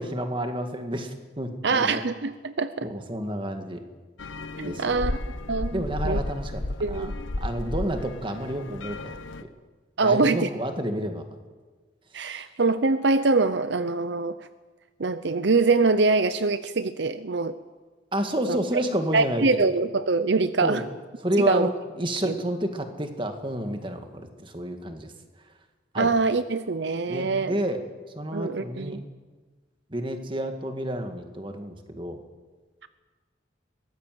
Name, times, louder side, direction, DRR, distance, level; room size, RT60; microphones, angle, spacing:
voice 1, 0.0-2.0 2.8-3.8 4.6-5.0 5.7-7.1 7.4-9.2 9.4-9.5 10.0-11.2 12.2-12.4 18.1-19.7 20.6-20.9 21.2-21.7 22.0-25.1 25.9-26.1 27.1-27.8 28.2-29.0 29.9-32.2, right 1 dB, 25° right, 6 dB, 2.0 m, -30 dB
voice 2, 1.6-2.9 4.6-5.2 5.5-6.2 6.8-7.1 10.0-10.5 12.1-14.3 15.0-17.6 18.5-18.6 19.1-20.8 21.5-21.7 22.3-22.4 26.0-27.6 28.3-29.0, right 3 dB, 65° right, 12 dB, 0.7 m, -24 dB
sound 1, 4.2-9.4, left 1 dB, 85° left, 1.2 m, -33 dB
23.0 x 19.0 x 7.7 m, 1.4 s
head